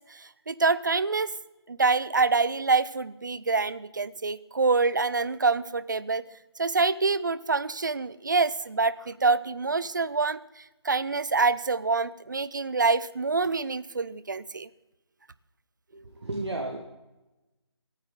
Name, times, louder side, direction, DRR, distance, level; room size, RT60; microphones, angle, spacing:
voice 1, 0.1-1.3 1.7-6.2 6.6-14.7, right 4 dB, 45° right, 17 dB, 0.6 m, -26 dB
voice 2, 15.9-16.8, right 2 dB, 70° right, 0 dB, 2.2 m, -33 dB
26.0 x 9.8 x 3.8 m, 1.0 s
figure-of-eight pair, 175°, 15 cm